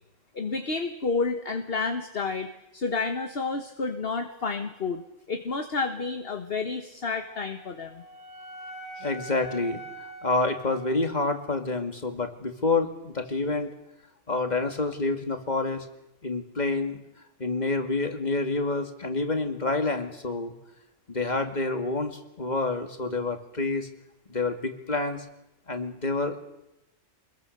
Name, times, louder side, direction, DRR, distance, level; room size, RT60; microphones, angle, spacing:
voice 1, 0.3-5.0 5.3-8.0, left 4 dB, 50° left, 6 dB, 1.6 m, -30 dB
Wind instrument woodwind instrument, 7.2-11.5, right 1 dB, 25° right, 4.2 m, -43 dB
voice 2, 9.0-9.8 10.2-13.7 14.3-15.9 16.2-17.0 17.4-20.5 21.1-23.9 24.3-25.3 25.7-26.4, left 3 dB, 35° left, 6 dB, 2.5 m, -28 dB
27.0 x 22.0 x 6.7 m, 0.89 s
omnidirectional pair, 1.3 m